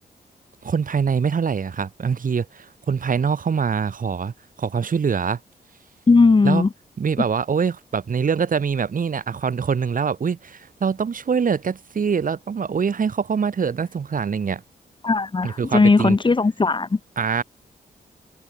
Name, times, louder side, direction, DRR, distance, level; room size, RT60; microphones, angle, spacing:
voice 1, 0.6-4.3 4.6-5.4 6.4-6.6 7.0-14.6 15.4-16.2 17.2-17.4, right 6 dB, 55° right, 6.3 m, -24 dB
voice 2, 6.1-6.7 15.0-17.0, left 3 dB, 30° left, 1.8 m, -17 dB
wide cardioid pair, 100°, 16 cm